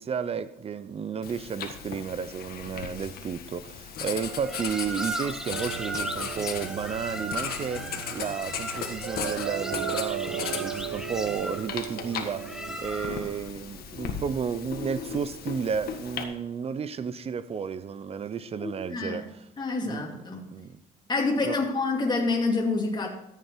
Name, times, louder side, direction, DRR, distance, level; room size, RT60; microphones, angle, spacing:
voice 1, 0.0-12.5 12.8-19.4 19.8-20.2 20.5-20.8 21.4-21.6, right 6 dB, 35° right, 0.8 m, -32 dB
Writing, 1.2-16.2, left 7 dB, 65° left, 1.7 m, -37 dB
sound 1, 4.2-13.4, right 1 dB, 5° right, 1.1 m, -37 dB
sound 2, 5.5-12.8, right 10 dB, 65° right, 1.3 m, -37 dB
voice 2, 18.6-19.3 19.6-20.4 21.1-23.1, left 3 dB, 25° left, 2.4 m, -27 dB
13.5 x 8.4 x 4.6 m
cardioid pair, 110°, 17 cm